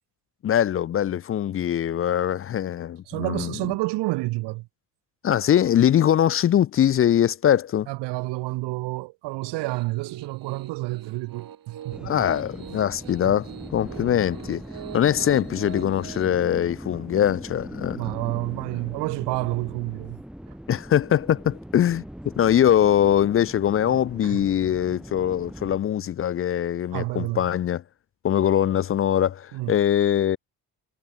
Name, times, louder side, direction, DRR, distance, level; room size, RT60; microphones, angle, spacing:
voice 1, 0.4-3.6 5.2-7.9 12.0-14.6 14.9-18.0 20.7-22.0 22.4-27.8 28.2-30.4, left 10 dB, 35° left, 0.4 m, -22 dB
voice 2, 3.1-4.7 7.9-12.1 13.2-13.3 17.9-20.2 24.2-24.4 26.9-27.5 29.5-29.8, right 22 dB, 90° right, 0.8 m, -29 dB
Piano, 9.4-16.3, right 10 dB, 55° right, 3.5 m, -42 dB
sound 1, 11.9-25.8, equal, ahead, 1.5 m, -40 dB
cardioid pair, 85°, 40 cm